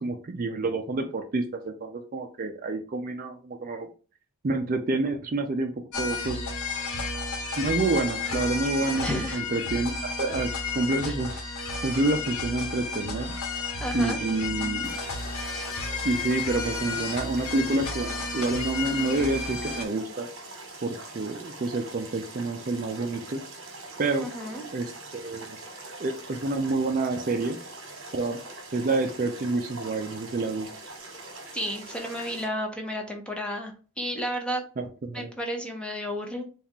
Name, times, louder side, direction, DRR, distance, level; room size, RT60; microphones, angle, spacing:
voice 1, 0.0-3.9 4.4-6.5 7.6-9.9 10.2-11.4 11.8-13.3 13.9-14.9 16.0-20.3 20.8-23.4 24.0-24.3 24.7-25.6 26.0-27.6 28.1-28.4 28.7-30.7 34.8-35.3, right 2 dB, 40° right, 5 dB, 0.4 m, -28 dB
sound 1, 5.9-19.9, left 3 dB, 70° left, 0.9 m, -32 dB
voice 2, 9.0-9.4 11.0-11.2 13.8-14.2 24.2-24.6 31.5-34.6 35.1-36.4, equal, 5° left, 2 dB, 0.7 m, -32 dB
sound 2, 14.8-32.5, right 2 dB, 60° right, 1.2 m, -43 dB
4.2 x 2.4 x 3.5 m, 0.36 s
head